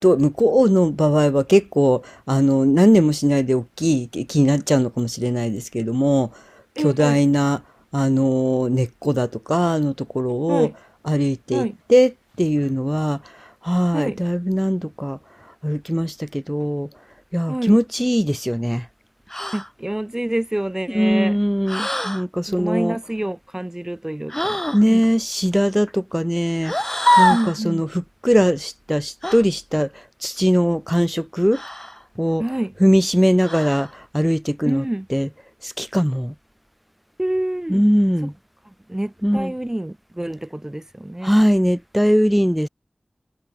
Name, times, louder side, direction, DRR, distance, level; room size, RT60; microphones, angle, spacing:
voice 1, 0.0-6.3 6.8-7.6 7.9-10.7 11.1-12.1 12.4-13.2 13.6-15.2 15.6-16.9 17.3-18.9 20.9-23.0 24.7-26.7 27.2-29.9 30.2-31.6 32.2-32.4 32.8-35.3 35.6-36.3 37.7-38.3 39.2-39.5 41.2-42.7, equal, ahead, 5.1 m, -19 dB
voice 2, 6.8-7.2 10.5-10.7 11.5-11.8 13.9-14.2 17.5-17.8 19.5-21.4 22.5-25.0 27.3-27.8 32.4-32.7 34.6-35.1 37.2-37.8 38.9-41.4, right 1 dB, 20° right, 3.2 m, -27 dB
sound 1, 19.3-19.7 21.7-22.2 24.3-24.8 26.6-27.6 29.2-29.4 31.5-32.0 33.4-33.9, left 1 dB, 15° left, 5.1 m, -22 dB
wide cardioid pair, 55°, 2 cm